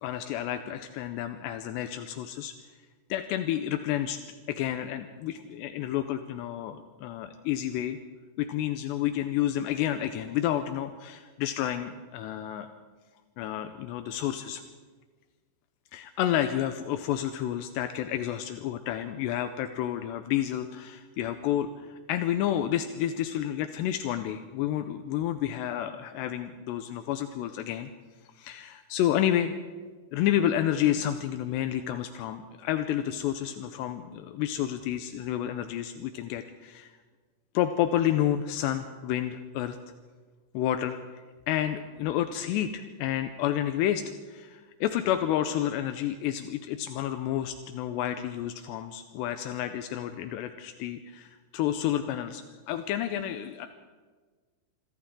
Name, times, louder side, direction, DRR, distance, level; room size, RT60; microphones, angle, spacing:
voice 1, 0.0-2.5 3.1-4.2 4.5-8.0 8.4-12.7 13.4-14.6 15.9-27.9 28.4-29.5 30.1-36.9 37.5-39.8 40.5-41.0 41.5-53.7, left 11 dB, 85° left, 8 dB, 2.9 m, -30 dB
26.5 x 26.5 x 3.8 m, 1.4 s
omnidirectional pair, 4.9 m